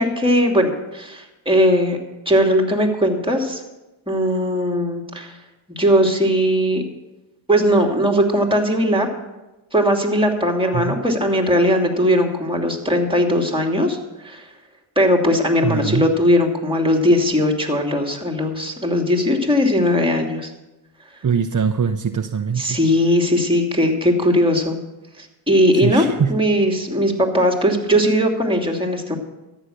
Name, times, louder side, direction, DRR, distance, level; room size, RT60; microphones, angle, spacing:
voice 1, 0.0-2.0 2.3-3.6 4.1-5.3 5.7-6.8 7.5-9.1 9.7-14.0 14.2-14.4 15.0-20.5 22.6-24.8 25.2-26.0 26.3-29.2, equal, 10° right, 2 dB, 2.9 m, -19 dB
voice 2, 15.6-16.1 21.2-22.8 25.7-26.4, right 6 dB, 40° right, 6 dB, 0.7 m, -22 dB
14.0 x 10.0 x 6.6 m, 1.0 s
cardioid pair, 55°, 47 cm